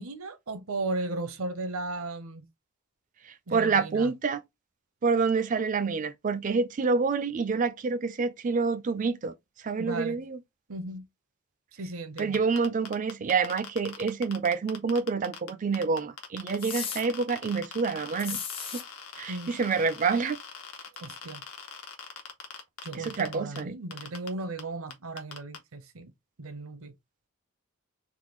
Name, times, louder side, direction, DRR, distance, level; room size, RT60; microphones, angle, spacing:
voice 1, 0.0-2.5 3.5-4.1 9.8-10.2 10.7-11.1 11.8-12.4 19.3-19.5 21.0-21.4 22.8-26.1 26.4-26.9, right 2 dB, 70° right, 0.7 m, -36 dB
voice 2, 3.5-4.4 5.0-9.3 9.6-10.4 12.2-18.4 18.7-18.8 19.2-20.4 22.9-23.7, right 4 dB, 35° right, 0.3 m, -27 dB
sound 1, 12.2-15.5 15.7-23.6 23.9-24.3 24.6-24.7 24.9-25.6, left 7 dB, 70° left, 0.7 m, -42 dB
sound 2, 16.6-17.0 18.2-18.8, left 7 dB, 25° left, 0.5 m, -35 dB
3.6 x 2.1 x 3.0 m
head